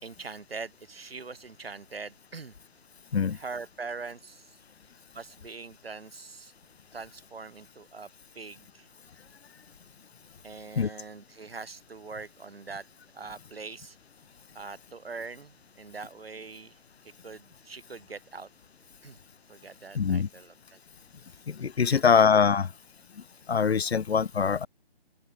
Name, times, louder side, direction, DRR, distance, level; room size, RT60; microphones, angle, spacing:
voice 1, 0.0-2.6 3.3-4.6 5.1-6.5 6.9-8.9 10.4-12.9 13.1-14.0 14.5-16.8 17.0-18.5 19.0-19.2 19.5-20.8 21.9-22.0, right 4 dB, 70° right, 3.8 m, -42 dB
voice 2, 19.9-20.3 21.5-22.7 23.5-24.7, left 6 dB, 85° left, 0.9 m, -23 dB
hypercardioid pair, 180°, 31 cm